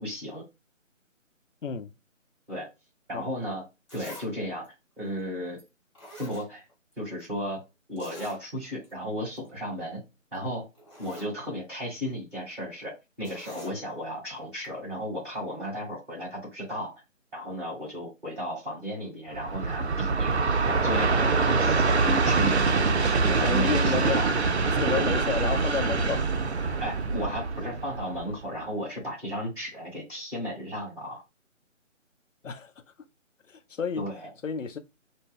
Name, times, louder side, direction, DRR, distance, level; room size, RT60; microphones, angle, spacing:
voice 1, 0.0-0.4 2.5-2.7 3.1-3.6 3.9-4.7 5.0-5.6 6.2-6.6 7.0-7.6 7.9-10.0 10.3-10.7 11.0-12.9 13.2-16.9 17.3-20.4 20.7-22.6 23.0-24.3 25.0-25.1 25.8-26.1 26.8-31.2 34.0-34.3, equal, 5° right, 1.0 m, -34 dB
Zipper (clothing), 3.9-4.3 4.6-4.7 5.6-5.7 6.0-6.9 7.2-7.3 8.0-8.4 8.8-8.9 9.3-9.5 10.4-10.5 10.8-11.3 13.2-13.8 14.6-14.7, equal, 25° left, 0.9 m, -46 dB
Train, 19.3-28.6, right 4 dB, 60° right, 0.5 m, -25 dB
voice 2, 23.4-24.2 24.8-26.4 32.4-32.7 33.5-34.1 34.4-34.8, left 6 dB, 70° left, 0.6 m, -31 dB
2.2 x 2.1 x 3.4 m
figure-of-eight pair, 150°, 39 cm